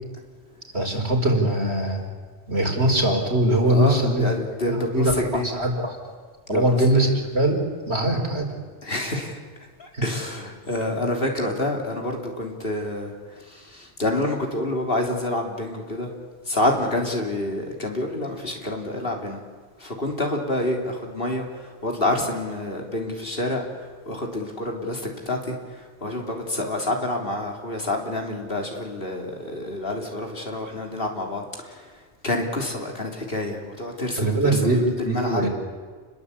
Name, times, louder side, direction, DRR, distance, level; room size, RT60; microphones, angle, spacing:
voice 1, 0.7-2.0 2.5-4.3 4.6-6.0 6.5-7.6 7.9-8.4 9.9-10.0 34.1-34.8 35.0-35.5, right 1 dB, 85° right, 1 dB, 4.9 m, -21 dB
voice 2, 3.6-5.5 6.5-7.1 8.8-9.3 9.8-16.1 16.5-19.4 19.8-23.6 24.1-31.8 32.2-34.7 35.0-35.5, left 1 dB, 60° left, 2 dB, 3.7 m, -28 dB
29.5 x 21.0 x 8.5 m, 1.5 s
omnidirectional pair, 1.1 m